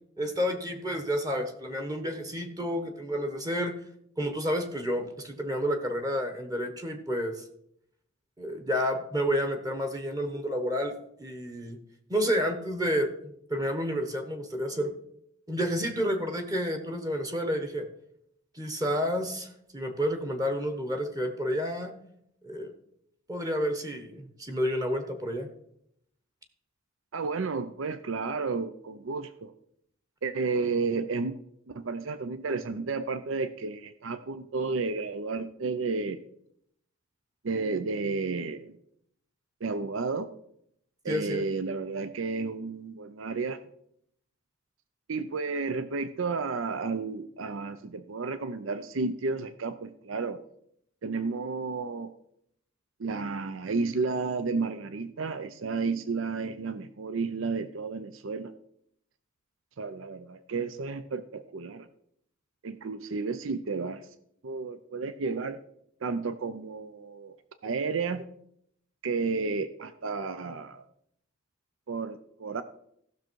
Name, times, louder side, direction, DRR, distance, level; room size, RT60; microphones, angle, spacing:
voice 1, 0.2-3.7 4.2-7.4 8.4-11.8 12.1-14.9 15.5-17.9 18.5-21.9 22.4-22.7 23.3-25.5 41.1-41.4, equal, 20° right, 7 dB, 1.0 m, -30 dB
voice 2, 27.1-29.5 30.2-31.4 31.7-36.2 37.4-38.7 39.6-40.3 41.0-43.6 45.1-50.4 51.0-52.1 53.0-58.5 59.8-61.9 62.6-64.0 64.4-65.6 66.0-67.4 67.6-68.2 69.0-70.8 71.9-72.6, right 4 dB, 75° right, 12 dB, 0.6 m, -32 dB
14.5 x 6.4 x 4.6 m, 0.72 s
head